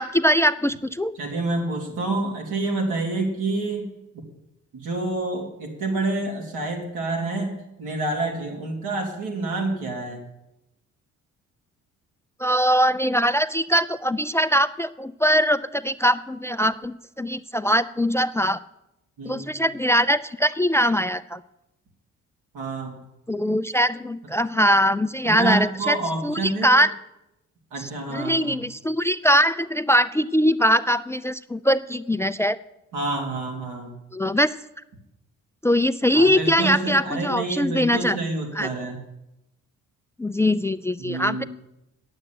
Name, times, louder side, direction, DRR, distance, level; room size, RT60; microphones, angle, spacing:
voice 1, 0.0-1.1 12.4-18.6 19.3-21.4 23.3-26.0 26.2-26.9 27.8-32.6 34.1-34.5 35.6-38.2 38.6-38.7 40.2-41.4, equal, 10° left, 15 dB, 0.3 m, -22 dB
voice 2, 1.2-3.9 4.7-10.2 19.2-19.5 22.5-22.9 25.2-26.8 27.7-28.6 32.9-33.9 36.1-39.0 41.0-41.5, right 2 dB, 90° right, 0 dB, 3.3 m, -28 dB
8.8 x 7.9 x 9.2 m, 0.89 s
cardioid pair, 90°, 30 cm